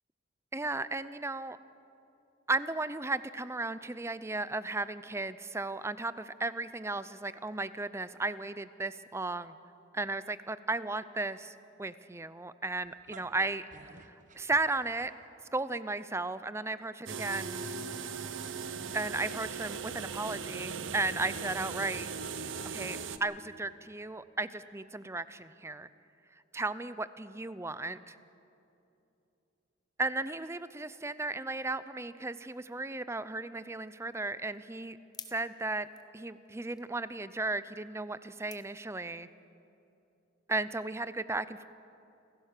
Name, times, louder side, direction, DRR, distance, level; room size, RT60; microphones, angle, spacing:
voice 1, 0.5-1.6 2.5-9.6 9.9-11.5 11.8-15.1 15.5-17.6 18.9-22.1 22.7-25.9 26.5-28.1 30.0-35.0 35.3-35.9 36.1-39.3 40.5-41.7, right 2 dB, 15° right, 15 dB, 0.5 m, -35 dB
sound 1, 12.8-15.4, right 3 dB, 40° right, 1.1 m, -54 dB
sound 2, 17.1-23.2, right 5 dB, 80° right, 0.9 m, -39 dB
sound 3, 33.8-39.4, left 7 dB, 20° left, 0.9 m, -55 dB
29.5 x 15.5 x 6.7 m, 2.8 s
head